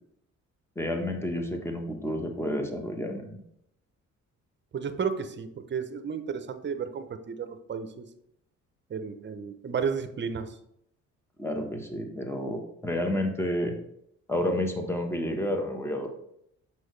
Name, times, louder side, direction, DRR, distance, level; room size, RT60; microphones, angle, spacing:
voice 1, 0.8-3.4 11.4-13.8 14.3-16.1, left 1 dB, 10° left, 3 dB, 1.1 m, -30 dB
voice 2, 4.7-8.1 8.9-10.5, right 6 dB, 40° right, 9 dB, 0.7 m, -33 dB
6.2 x 5.5 x 3.2 m, 0.74 s
cardioid pair, 90°, 30 cm